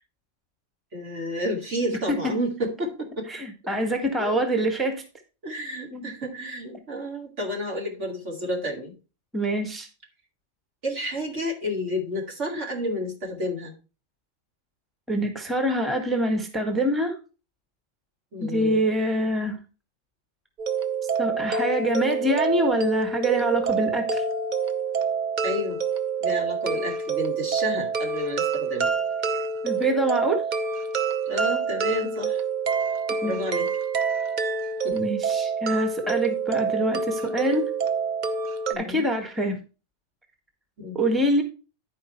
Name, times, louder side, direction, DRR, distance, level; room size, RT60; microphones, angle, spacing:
voice 1, 0.9-3.3 4.2-4.4 5.4-8.9 10.8-13.7 18.3-18.8 25.4-25.8 26.2-28.9 31.3-32.4 33.2-33.7 34.8-35.1 38.7-39.0 40.8-41.0, equal, 65° right, 0 dB, 2.9 m, -30 dB
voice 2, 3.3-5.0 5.9-6.1 9.3-9.9 15.1-17.2 18.4-19.6 21.2-24.2 29.6-30.4 33.2-33.3 34.9-37.7 38.8-39.6 40.9-41.4, right 1 dB, ahead, 4 dB, 1.4 m, -25 dB
sound 1, 20.6-38.7, right 5 dB, 45° right, 0.8 m, -27 dB
11.0 x 4.8 x 4.4 m, 0.32 s
omnidirectional pair, 1.3 m